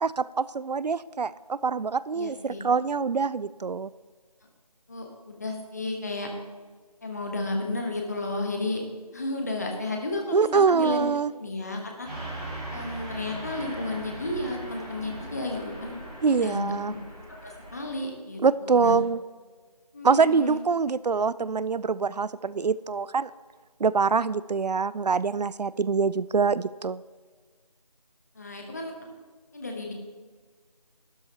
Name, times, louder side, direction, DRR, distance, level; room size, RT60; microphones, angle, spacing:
voice 1, 0.0-3.9 10.3-11.3 16.2-16.9 18.4-19.2 20.0-23.3 23.8-27.0, right 5 dB, 85° right, 18 dB, 0.4 m, -24 dB
voice 2, 2.1-2.6 4.9-6.3 7.0-8.8 9.1-11.1 11.4-12.1 12.7-16.0 16.3-17.0 17.4-19.0 19.9-20.6 28.3-28.9 29.5-29.9, left 2 dB, 25° left, 2 dB, 1.1 m, -32 dB
Car passing by / Truck, 12.0-17.9, right 1 dB, 10° right, 1.7 m, -39 dB
12.5 x 12.5 x 2.8 m, 1.5 s
figure-of-eight pair, 170°, 20 cm